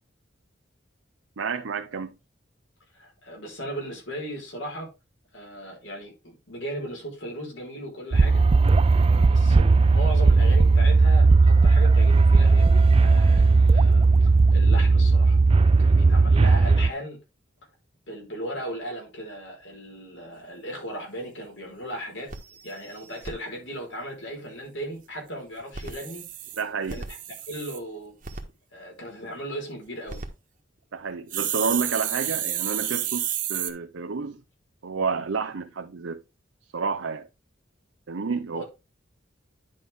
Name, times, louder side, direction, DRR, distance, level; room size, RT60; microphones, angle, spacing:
voice 1, 1.4-2.1 26.6-27.0 30.9-33.2 33.5-34.4 34.8-36.2 36.7-37.3 38.1-38.6, right 5 dB, 85° right, 0.7 m, -30 dB
voice 2, 2.9-4.9 5.3-8.4 9.1-14.1 14.5-17.2 18.1-22.3 22.6-26.2 26.9-27.2 27.5-28.1 28.7-30.2 38.5-38.6, equal, 70° left, 4.9 m, -37 dB
sound 1, 8.1-16.9, right 3 dB, 30° right, 0.3 m, -17 dB
sound 2, 21.1-21.2 21.6-21.7 21.9-22.0 22.3-23.3 25.6-27.8 28.2-28.4 29.9-30.3 31.3-33.7, right 10 dB, 45° right, 1.4 m, -31 dB
10.5 x 5.4 x 3.6 m
head